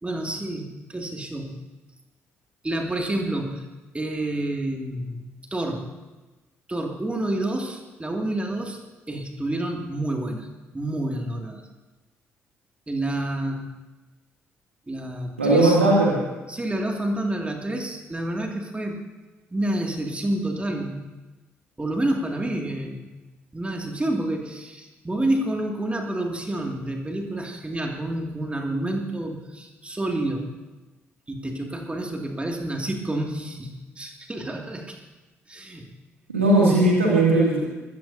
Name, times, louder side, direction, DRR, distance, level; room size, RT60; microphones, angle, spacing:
voice 1, 0.0-1.6 2.6-3.6 3.9-5.9 6.7-8.8 9.1-10.5 10.7-11.6 12.9-13.8 14.9-15.8 16.5-19.0 19.5-21.1 21.8-23.1 23.5-30.5 31.3-35.0 35.5-35.8, right 1 dB, 15° right, 1 dB, 2.3 m, -29 dB
voice 2, 15.4-16.1 36.3-37.6, right 2 dB, 85° right, -4 dB, 2.5 m, -18 dB
22.5 x 16.0 x 2.8 m, 1.1 s
figure-of-eight pair, 45°, 7 cm